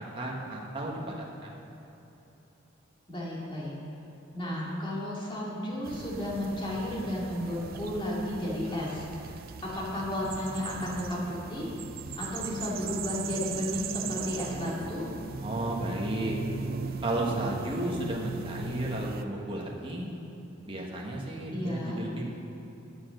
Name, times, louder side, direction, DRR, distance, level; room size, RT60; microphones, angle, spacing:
voice 1, 0.1-1.6 15.4-16.4 17.0-20.1 20.7-22.3, right 1 dB, 25° right, -3 dB, 1.4 m, -33 dB
voice 2, 3.1-3.7 4.3-11.7 12.2-15.0 21.5-22.1, left 1 dB, 25° left, -5 dB, 2.3 m, -33 dB
sound 1, 5.8-19.3, right 5 dB, 50° right, 0.4 m, -39 dB
11.5 x 7.0 x 6.4 m, 3.0 s
head